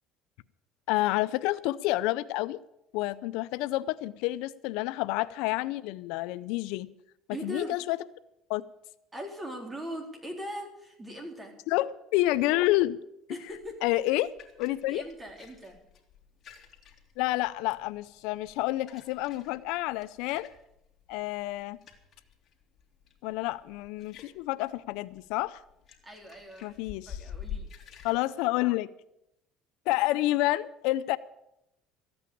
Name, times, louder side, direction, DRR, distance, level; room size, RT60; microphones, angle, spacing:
voice 1, 0.9-2.6 2.9-6.9 7.4-8.0 8.5-8.7 11.7-13.0 13.8-14.3 14.6-15.0 17.2-20.5 21.1-21.8 23.2-25.6 26.6-27.2 28.0-28.9 29.9-31.2, left 17 dB, 80° left, 16 dB, 0.5 m, -29 dB
voice 2, 7.3-7.8 9.1-11.5 13.3-13.8 14.9-15.8 26.0-27.7, equal, 15° right, 2 dB, 3.9 m, -40 dB
sound 1, 13.5-28.2, left 7 dB, 45° left, 2.6 m, -48 dB
14.5 x 8.7 x 8.6 m, 0.83 s
cardioid pair, 110°, 0 cm